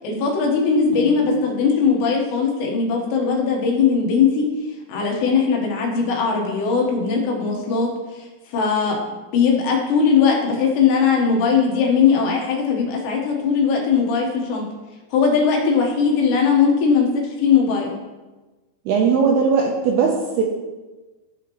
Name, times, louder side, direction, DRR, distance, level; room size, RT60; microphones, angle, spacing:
voice 1, 0.0-4.5 4.9-7.9 8.2-9.0 9.3-14.6 15.1-17.9, left 5 dB, 70° left, 0 dB, 3.2 m, -19 dB
voice 2, 18.9-20.4, right 5 dB, 85° right, 0 dB, 2.3 m, -19 dB
13.5 x 5.0 x 3.0 m, 1.2 s
omnidirectional pair, 5.4 m